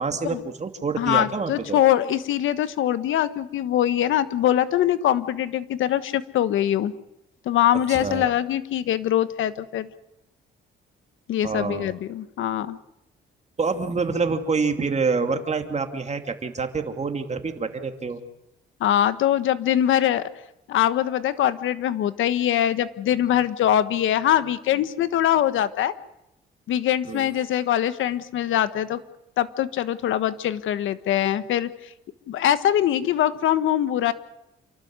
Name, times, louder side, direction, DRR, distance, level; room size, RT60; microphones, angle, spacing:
voice 1, 0.0-1.8 7.9-8.3 11.4-11.9 13.6-18.2 27.1-27.3, right 4 dB, 35° right, 6 dB, 2.7 m, -27 dB
voice 2, 1.0-6.9 7.4-9.9 11.3-12.8 18.8-20.3 20.7-25.9 26.7-29.0 29.4-31.7 32.3-34.1, left 11 dB, 80° left, 13 dB, 1.4 m, -23 dB
28.5 x 12.5 x 9.7 m, 0.89 s
cardioid pair, 90°, 20 cm